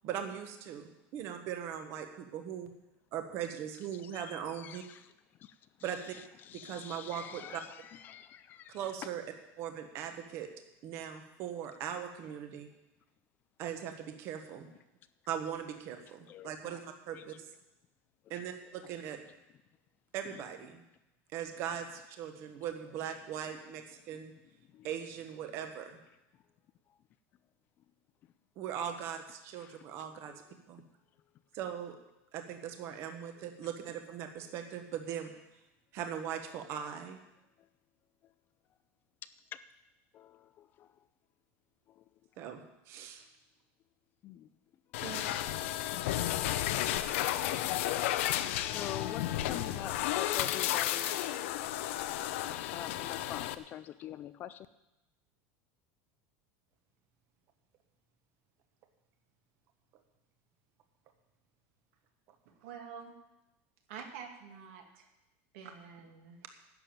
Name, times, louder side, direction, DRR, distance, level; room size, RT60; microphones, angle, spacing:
voice 1, 0.0-2.7 3.1-4.8 5.8-6.2 6.5-7.6 8.7-9.2 9.6-10.5 10.8-12.7 13.6-14.7 15.3-17.5 18.3-19.2 20.1-20.8 21.3-24.3 24.8-26.0 28.6-30.3 30.7-30.8 31.5-31.9 32.3-35.3 35.9-37.2 42.4-42.6 42.9-43.2 45.0-45.3, right 9 dB, 40° right, 6 dB, 1.3 m, -40 dB
voice 2, 4.0-5.1 5.4-5.5 6.4-8.8 16.3-16.8 17.1-17.2 24.7-24.9 29.6-29.7 30.3-30.4 39.5-39.6 40.1-40.9 44.2-44.5 48.4-51.3 52.7-54.7, left 11 dB, 25° left, 13 dB, 0.3 m, -45 dB
sound 1, 44.9-53.5, left 13 dB, 70° left, 0.7 m, -33 dB
voice 3, 62.6-63.1 63.9-65.1 65.5-66.5, right 6 dB, 65° right, 3 dB, 2.2 m, -47 dB
11.0 x 7.0 x 9.1 m, 0.93 s
supercardioid pair, 175°, 7 cm